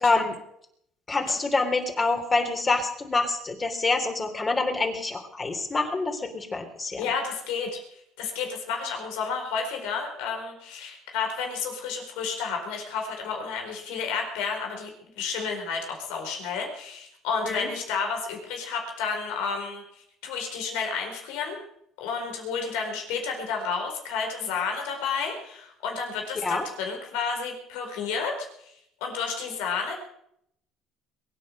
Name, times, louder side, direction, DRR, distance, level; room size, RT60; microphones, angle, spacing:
voice 1, 0.0-0.3 1.1-7.1 17.4-17.7 26.4-26.6, left 3 dB, 25° left, 4 dB, 3.4 m, -26 dB
voice 2, 7.0-19.8 20.2-21.6 22.0-28.7 29.0-29.9, left 5 dB, 90° left, 3 dB, 4.5 m, -31 dB
22.5 x 9.7 x 6.5 m, 0.74 s
cardioid pair, 105°, 0 cm